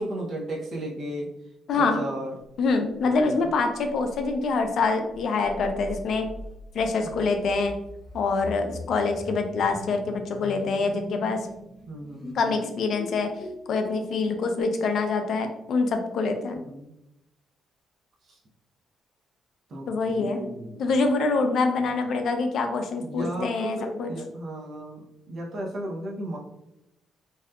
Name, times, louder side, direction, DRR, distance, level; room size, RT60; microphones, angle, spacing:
voice 1, 0.0-1.3 1.7-2.4 3.0-3.5 7.0-7.2 11.9-12.5 16.6-16.9 18.3-18.4 19.7-20.9 21.8-21.9 23.0-26.4, right 1 dB, 55° right, -2 dB, 0.6 m, -35 dB
voice 2, 1.7-2.0 2.6-6.3 6.7-7.7 8.1-11.4 12.3-13.3 13.7-16.6 19.9-20.4 20.8-24.1, left 4 dB, 65° left, 6 dB, 0.4 m, -25 dB
sound 1, 2.7-2.8 3.1-3.2 3.5-3.6 3.8-14.6, left 1 dB, 20° left, 0.7 m, -42 dB
2.7 x 2.3 x 2.2 m, 0.86 s
cardioid pair, 90°, 0 cm